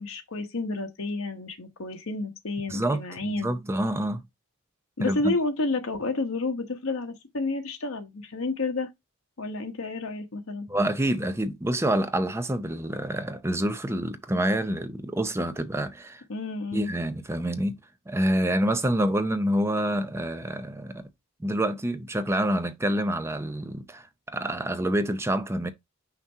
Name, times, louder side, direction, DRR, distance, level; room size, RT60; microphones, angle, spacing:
voice 1, 0.0-3.5 5.0-8.9 9.4-10.7 16.3-16.9, left 3 dB, 70° left, 1.2 m, -30 dB
voice 2, 2.7-4.2 5.0-5.3 10.7-16.2 16.7-17.8 18.1-21.0 21.4-25.7, right 1 dB, 10° right, 0.5 m, -27 dB
5.9 x 2.9 x 5.5 m
head